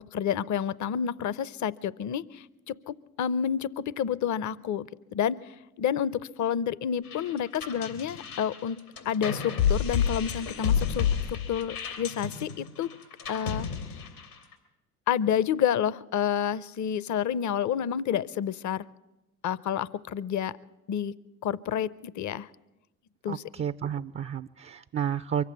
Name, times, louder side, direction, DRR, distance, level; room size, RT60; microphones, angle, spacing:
voice 1, 0.1-5.4 5.8-8.8 9.1-12.9 13.3-13.7 15.1-18.9 19.4-20.5 20.9-21.1 21.4-22.5 23.2-23.4, left 8 dB, 40° left, 20 dB, 0.7 m, -29 dB
sound 1, 7.0-14.5, left 7 dB, 90° left, 2.9 m, -30 dB
voice 2, 23.3-25.4, right 8 dB, 30° right, 12 dB, 0.5 m, -31 dB
24.0 x 8.2 x 7.3 m, 1.0 s
hypercardioid pair, 45°, 43 cm